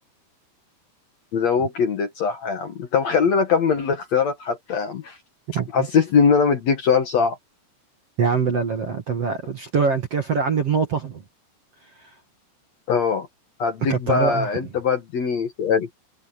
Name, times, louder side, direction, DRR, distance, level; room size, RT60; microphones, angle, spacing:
voice 1, 1.3-5.2 5.7-7.4 12.9-13.3 13.6-16.0, left 6 dB, 60° left, 1.8 m, -21 dB
voice 2, 5.5-5.9 8.2-11.2 13.9-14.7, right 5 dB, 45° right, 2.3 m, -23 dB
omnidirectional pair, 5.3 m